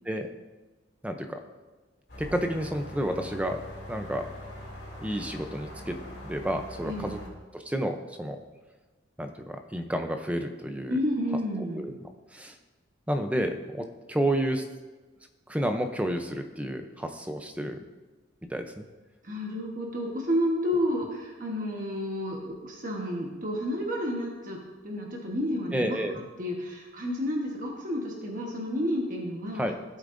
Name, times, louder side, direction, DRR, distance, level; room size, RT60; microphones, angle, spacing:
voice 1, 1.0-1.4 2.2-3.6 3.9-4.3 5.0-6.0 6.2-7.2 7.5-8.4 9.2-11.0 11.8-11.9 12.3-12.6 13.1-14.6 15.5-17.8 18.5-18.8 25.7-26.2 29.6-29.7, right 1 dB, 5° right, 6 dB, 0.6 m, -30 dB
sound 1, 2.1-7.3, left 1 dB, 60° left, 2.7 m, -43 dB
voice 2, 6.8-7.2 10.9-11.8 19.2-29.6, equal, 45° right, -1 dB, 1.2 m, -31 dB
15.5 x 8.3 x 2.6 m, 1.2 s
head